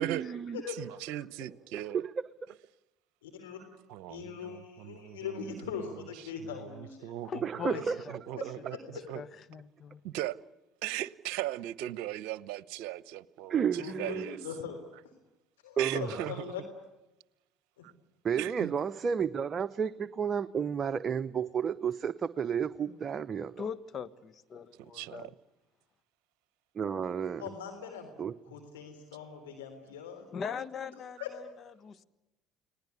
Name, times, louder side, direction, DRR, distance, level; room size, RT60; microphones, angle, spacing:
voice 1, 0.0-0.6 1.7-2.1 7.4-8.0 13.5-14.3 15.8-16.2 18.2-23.6 26.8-27.4 28.2-28.3, right 7 dB, 40° right, 0.8 m, -31 dB
voice 2, 0.7-2.1 3.9-4.2 4.5-5.7 6.4-6.5 6.8-7.5 8.1-8.8 9.1-9.2 10.0-10.4 10.8-14.4 15.8-16.5 17.8-17.9 18.4-18.7 24.8-25.3, right 14 dB, 70° right, 0.9 m, -38 dB
voice 3, 3.2-3.6 4.1-7.2 7.7-7.8 8.7-9.0 13.6-14.8 15.6-16.6 17.8-17.9 27.4-28.1 28.5-30.3 31.2-31.3, left 7 dB, 90° left, 3.5 m, -41 dB
voice 4, 7.2-10.0 22.9-23.0 23.6-25.3 30.3-32.0, left 7 dB, 45° left, 1.4 m, -41 dB
30.0 x 20.0 x 8.3 m
hypercardioid pair, 70°, 0 cm